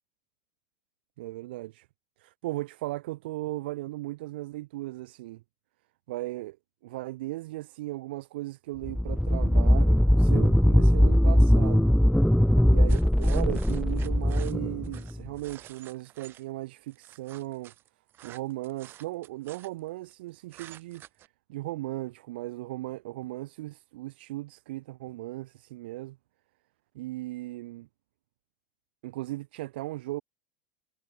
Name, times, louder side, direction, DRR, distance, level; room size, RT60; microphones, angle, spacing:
voice 1, 1.2-1.9 2.2-5.4 6.1-6.6 6.8-11.9 12.7-17.7 18.2-21.0 21.5-26.2 26.9-27.9 29.0-30.2, right 18 dB, 70° right, 3.2 m, -37 dB
sound 1, 8.8-15.3, equal, ahead, 0.3 m, -21 dB
sound 2, 12.9-16.4 16.9-20.1 20.5-21.3, right 13 dB, 40° right, 2.0 m, -50 dB
hypercardioid pair, 100°, 6 cm